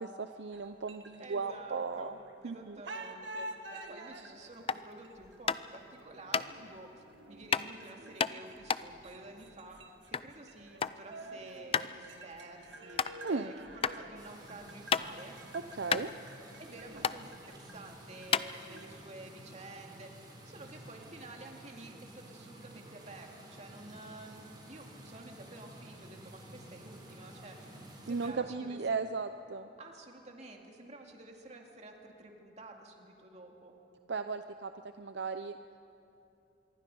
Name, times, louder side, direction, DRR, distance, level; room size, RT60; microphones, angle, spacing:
voice 1, 0.0-2.1 2.4-2.8 13.2-13.5 15.8-16.1 28.1-29.7 34.1-34.7 35.0-35.6, right 4 dB, 65° right, 9 dB, 0.6 m, -36 dB
sound 1, 0.5-2.5 2.8-18.9, right 2 dB, 85° right, 1.7 m, -50 dB
voice 2, 1.2-9.8 10.1-15.4 16.6-20.1 20.4-28.8 29.8-33.7, right 2 dB, 40° right, 2 dB, 2.3 m, -50 dB
sound 2, 4.6-4.9 5.5-5.8 6.3-6.5 7.5-7.7 8.2-10.3 10.6-11.0 11.3-11.4 11.7-11.9 12.4-12.5 12.9-13.1 13.8-13.9 14.4-15.3 15.6-15.7 15.9-16.7 17.0-17.2 17.8-17.9 18.3-19.0, left 6 dB, 30° left, 0.4 m, -31 dB
sound 3, 14.1-28.3, right 1 dB, 25° right, 4.1 m, -52 dB
25.5 x 23.0 x 5.4 m, 2.8 s
head